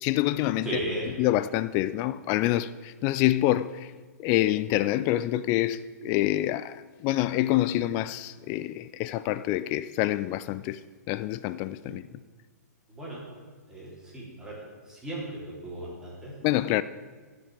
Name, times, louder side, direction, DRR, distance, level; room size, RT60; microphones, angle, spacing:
voice 1, 0.0-0.7 1.2-3.9 4.2-10.8 11.1-12.1 16.4-16.8, left 15 dB, 30° left, 0.3 m, -26 dB
voice 2, 0.6-1.1 11.8-12.0 12.9-13.2 13.7-14.6 14.9-16.3, right 1 dB, 5° right, 3.5 m, -36 dB
10.5 x 5.9 x 8.5 m
figure-of-eight pair, 115°, 9 cm